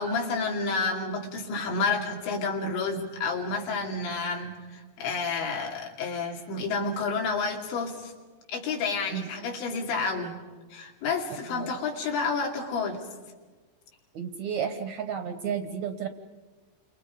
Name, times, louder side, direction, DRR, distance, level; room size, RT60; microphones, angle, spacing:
voice 1, 0.0-8.1 8.5-10.4 10.7-13.1, left 4 dB, 90° left, 1 dB, 5.0 m, -30 dB
voice 2, 14.1-16.1, right 8 dB, 75° right, 8 dB, 1.7 m, -32 dB
30.0 x 26.0 x 5.2 m, 1.4 s
omnidirectional pair, 5.0 m